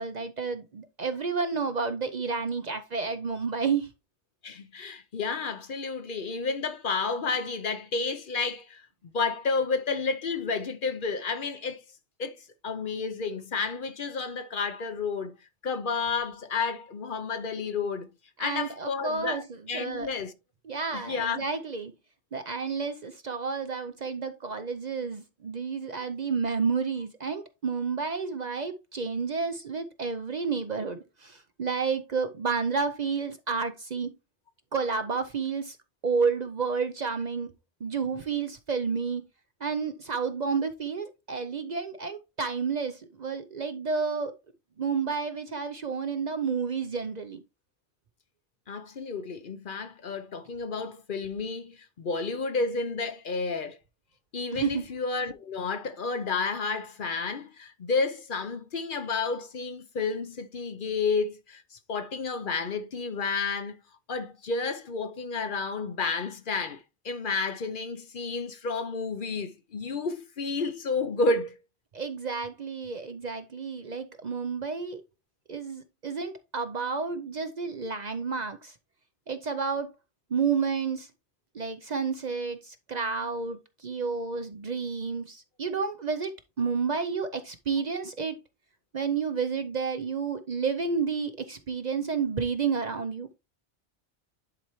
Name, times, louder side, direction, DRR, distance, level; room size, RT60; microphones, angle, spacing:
voice 1, 0.0-3.9 18.4-19.4 19.7-20.1 20.6-21.9 22.3-34.1 34.7-35.8 36.0-37.5 37.8-39.2 39.6-44.3 44.8-47.4 54.5-54.8 71.9-75.0 75.5-78.7 79.3-79.9 80.3-81.1 81.5-88.4 88.9-93.3, right 5 dB, 45° right, 0.6 m, -30 dB
voice 2, 4.4-8.9 9.1-11.8 12.2-15.3 15.6-18.1 18.4-20.3 20.9-21.4 48.7-53.8 54.3-63.7 64.1-71.6 84.2-84.3, left 4 dB, 55° left, 0.8 m, -31 dB
10.5 x 4.4 x 3.0 m
omnidirectional pair, 1.1 m